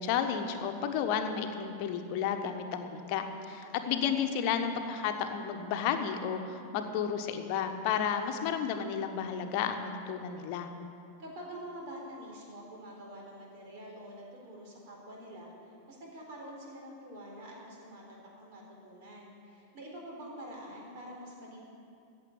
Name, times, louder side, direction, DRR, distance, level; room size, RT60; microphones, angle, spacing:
voice 1, 0.0-10.7, left 7 dB, 45° left, 6 dB, 1.2 m, -32 dB
voice 2, 3.8-4.1 11.2-21.6, equal, 45° right, -1 dB, 4.1 m, -46 dB
15.5 x 7.0 x 8.8 m, 2.5 s
figure-of-eight pair, 90°, 0 cm